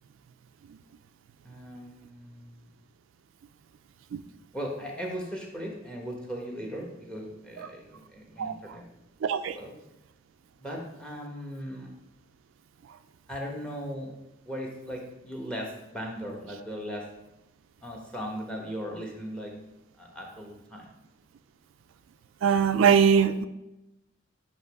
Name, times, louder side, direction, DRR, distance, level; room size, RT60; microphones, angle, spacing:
voice 1, 1.4-2.7 4.5-8.8 9.5-9.8 10.5-11.9 13.3-14.1 14.4-17.1 17.8-19.5 20.0-20.9, equal, 5° left, 0 dB, 1.0 m, -38 dB
voice 2, 9.2-9.6 22.4-23.5, right 7 dB, 75° right, 10 dB, 0.3 m, -21 dB
8.0 x 3.0 x 4.7 m, 0.93 s
head